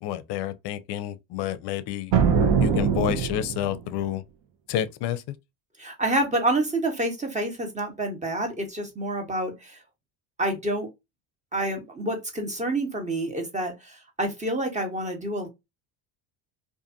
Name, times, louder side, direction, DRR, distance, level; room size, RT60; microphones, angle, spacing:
voice 1, 0.0-2.1 2.6-4.2 4.7-5.4, left 11 dB, 55° left, 0.5 m, -29 dB
sound 1, 2.1-3.9, right 6 dB, 60° right, 0.9 m, -22 dB
voice 2, 5.8-9.8 10.4-10.9 11.5-15.5, right 1 dB, 15° right, 1.0 m, -28 dB
2.6 x 2.5 x 2.5 m
supercardioid pair, 95°, 49 cm